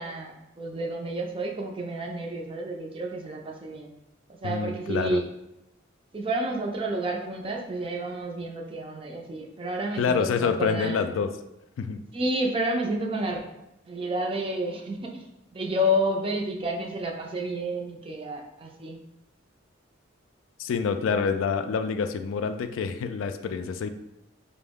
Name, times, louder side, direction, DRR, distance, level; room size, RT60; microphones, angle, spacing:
voice 1, 0.0-3.9 4.4-5.2 6.1-11.0 12.1-13.4 13.9-15.2 15.5-19.0, right 1 dB, 25° right, 2 dB, 0.4 m, -30 dB
voice 2, 4.4-5.2 10.0-11.3 11.8-12.0 20.6-23.9, left 5 dB, 80° left, 9 dB, 0.3 m, -27 dB
4.2 x 2.0 x 3.5 m, 0.87 s
head